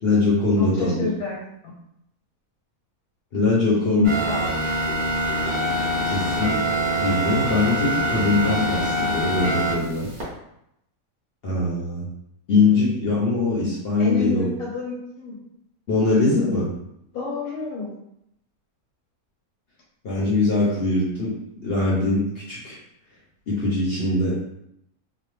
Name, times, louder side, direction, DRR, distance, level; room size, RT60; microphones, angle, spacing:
voice 1, 0.0-1.1 3.3-4.1 5.9-6.6 6.9-10.1 11.4-12.1 12.5-14.5 15.9-16.7 20.0-21.3 21.6-22.8 23.5-24.4, left 3 dB, 55° left, -6 dB, 0.7 m, -22 dB
voice 2, 0.6-1.4 1.6-1.7 3.6-4.5 14.0-15.4 15.9-16.3 17.1-17.9 24.0-24.1, left 3 dB, 80° left, -5 dB, 1.3 m, -28 dB
sound 1, 4.0-10.2, right 1 dB, 40° right, 0.9 m, -24 dB
2.9 x 2.1 x 3.1 m, 0.78 s
omnidirectional pair, 1.6 m